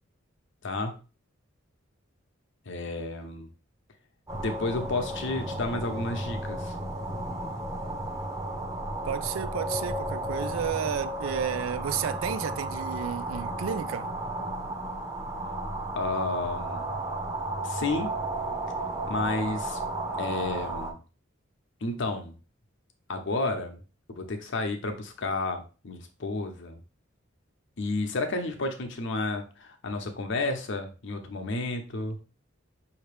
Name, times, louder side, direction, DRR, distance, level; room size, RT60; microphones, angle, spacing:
voice 1, 0.6-0.9 2.7-3.5 4.4-6.8 15.9-16.8 17.6-18.1 19.1-19.8 20.2-21.0 21.8-22.4 23.1-23.8 24.1-26.8 27.8-32.2, left 2 dB, 65° left, 0.8 m, -31 dB
sound 1, 4.3-20.9, right 2 dB, 15° right, 0.9 m, -33 dB
voice 2, 9.0-14.1, right 8 dB, 75° right, 0.4 m, -32 dB
5.7 x 2.9 x 3.3 m
head